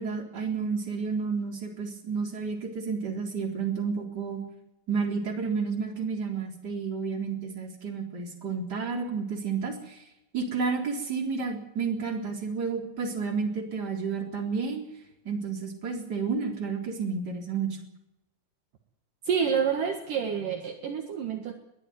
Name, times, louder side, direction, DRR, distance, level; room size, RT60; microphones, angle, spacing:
voice 1, 0.0-4.4 4.9-10.0 10.3-14.8 15.3-17.8, right 5 dB, 25° right, 0 dB, 4.0 m, -31 dB
voice 2, 19.3-21.5, right 7 dB, 60° right, 2 dB, 3.1 m, -28 dB
22.0 x 15.0 x 9.5 m, 0.91 s
omnidirectional pair, 4.5 m